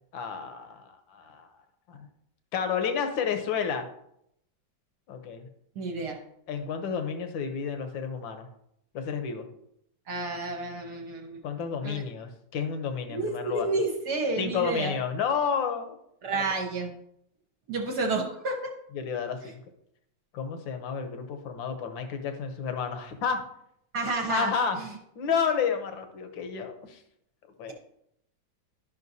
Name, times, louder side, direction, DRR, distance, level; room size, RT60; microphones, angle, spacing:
voice 1, 0.1-1.5 1.9-2.1 2.5-3.9 5.1-5.5 6.5-8.5 8.9-9.5 11.4-13.7 14.4-16.0 16.3-16.4 18.9-19.6 20.3-23.4 24.3-24.8 25.2-27.0 27.6-27.7, left 6 dB, 80° left, 7 dB, 1.6 m, -31 dB
voice 2, 5.8-6.2 10.1-11.4 11.8-12.0 13.1-14.9 16.2-16.9 17.7-18.6 23.9-24.5 24.8-24.9, right 3 dB, 65° right, 1 dB, 1.3 m, -30 dB
12.0 x 5.6 x 2.7 m, 0.76 s
omnidirectional pair, 2.1 m